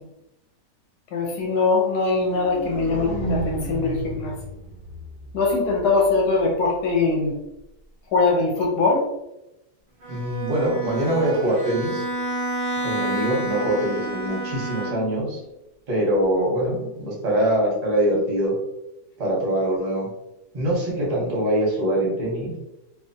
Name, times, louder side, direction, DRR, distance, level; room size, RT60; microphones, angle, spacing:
voice 1, 1.1-4.4 5.3-7.4 8.1-9.0, left 3 dB, 70° left, 0 dB, 1.2 m, -22 dB
sound 1, 2.0-6.1, right 1 dB, 30° left, 0.6 m, -32 dB
Bowed string instrument, 10.0-15.3, right 2 dB, 80° right, 0.5 m, -29 dB
voice 2, 10.1-12.0 12.8-15.4 15.9-18.5 19.2-20.1 20.5-22.5, right 1 dB, 35° right, -4 dB, 0.6 m, -23 dB
2.9 x 2.3 x 2.6 m, 0.91 s
omnidirectional pair, 2.0 m